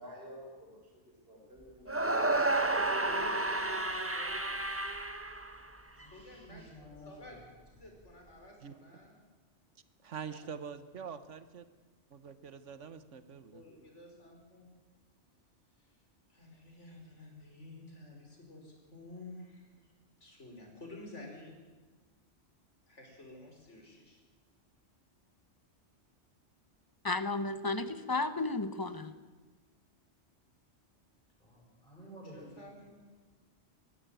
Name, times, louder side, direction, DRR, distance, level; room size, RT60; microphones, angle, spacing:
voice 1, 0.0-2.6, equal, 55° right, -2 dB, 6.1 m, -52 dB
sound 1, 1.9-6.0, right 2 dB, 10° right, 1.2 m, -31 dB
voice 2, 3.0-4.7 6.0-7.4 7.7-9.1 10.2-10.4 13.5-14.7 16.3-19.7 20.2-21.5 22.9-24.2 32.3-33.0, left 2 dB, 80° left, 1 dB, 5.3 m, -51 dB
voice 3, 5.9-7.4 31.4-32.6, equal, 5° left, -5 dB, 7.1 m, -52 dB
voice 4, 10.0-11.6 12.1-13.6, right 7 dB, 85° right, 13 dB, 1.5 m, -45 dB
voice 5, 27.0-29.1, left 3 dB, 20° left, 12 dB, 1.0 m, -33 dB
19.5 x 15.0 x 9.1 m, 1.3 s
omnidirectional pair, 1.2 m